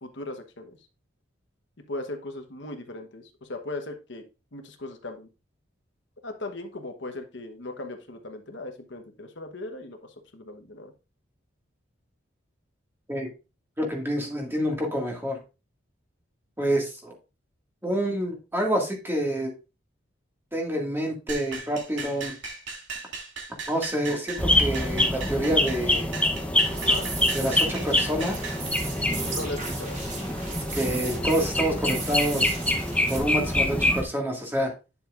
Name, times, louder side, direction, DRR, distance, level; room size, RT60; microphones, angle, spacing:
voice 1, 0.0-0.8 1.9-4.2 4.5-5.3 6.2-10.9 26.8-27.1 29.2-30.0, left 2 dB, 60° left, 5 dB, 1.2 m, -38 dB
voice 2, 13.8-15.4 16.6-17.1 17.8-19.5 20.5-22.4 23.7-26.1 27.3-28.5 30.7-32.6 33.1-34.7, equal, 10° right, 0 dB, 2.0 m, -27 dB
sound 1, 21.3-28.7, right 4 dB, 65° right, 2.9 m, -38 dB
sound 2, 24.4-34.0, left 1 dB, 5° left, 0.9 m, -25 dB
sound 3, 26.6-33.2, right 3 dB, 40° right, 3.8 m, -37 dB
10.0 x 7.2 x 2.5 m, 0.29 s
head